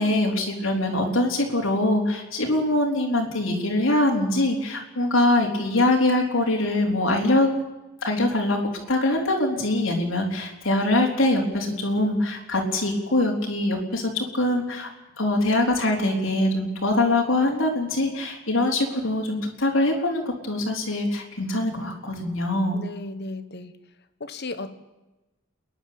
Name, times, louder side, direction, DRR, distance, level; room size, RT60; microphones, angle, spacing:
voice 1, 0.0-7.5 8.0-8.6 8.9-14.9 15.2-22.8, left 1 dB, 70° left, 0 dB, 4.1 m, -23 dB
voice 2, 22.7-23.7 24.2-24.8, left 2 dB, 55° left, 11 dB, 1.3 m, -35 dB
28.0 x 11.0 x 8.8 m, 1.1 s
head